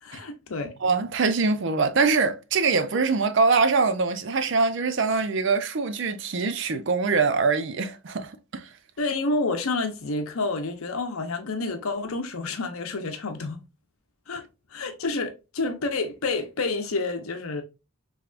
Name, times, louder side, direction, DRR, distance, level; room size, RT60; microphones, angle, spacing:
voice 1, 0.0-0.7 9.0-13.6 14.3-14.4 14.7-17.6, left 3 dB, 80° left, 0.7 m, -29 dB
voice 2, 0.8-8.7, right 4 dB, 55° right, 0.5 m, -23 dB
3.5 x 3.3 x 2.4 m
head